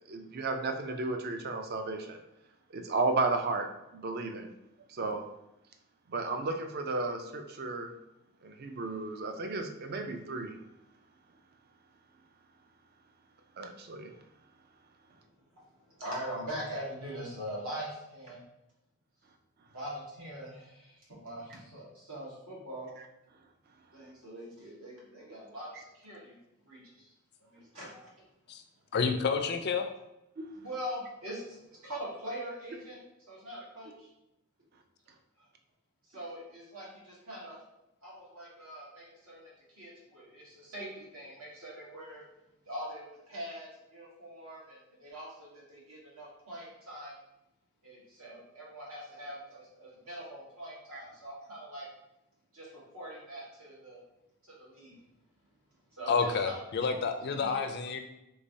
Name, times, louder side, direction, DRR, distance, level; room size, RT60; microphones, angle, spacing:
voice 1, 0.1-2.2 2.7-3.7 3.9-4.5 4.9-5.2 6.1-7.9 8.4-10.6 13.6-14.1 30.4-30.5 50.9-51.0, right 3 dB, 45° right, 5 dB, 0.4 m, -33 dB
voice 2, 15.9-18.4 19.7-22.9 23.9-26.4 26.7-27.1 27.4-28.1 30.5-33.0 33.2-34.1 36.1-37.6 38.0-39.4 39.8-42.2 42.6-47.1 47.8-51.9 52.5-54.0 54.4-55.0 55.9-56.9 57.4-57.6, equal, 70° right, -5 dB, 1.3 m, -43 dB
voice 3, 28.9-29.9 56.1-58.0, left 5 dB, 45° left, 7 dB, 0.3 m, -29 dB
3.3 x 3.2 x 2.7 m, 0.91 s
head